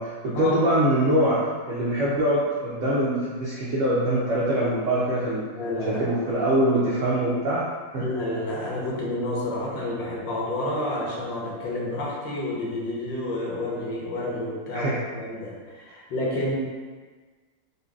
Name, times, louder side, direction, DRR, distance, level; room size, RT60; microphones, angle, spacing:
voice 1, 0.0-5.5 5.9-7.7 7.9-8.0 14.7-15.0, right 1 dB, 75° right, -8 dB, 0.7 m, -23 dB
voice 2, 5.6-6.1 8.0-16.5, left 1 dB, 85° left, -4 dB, 1.5 m, -29 dB
4.0 x 3.1 x 2.3 m, 1.4 s
omnidirectional pair, 2.0 m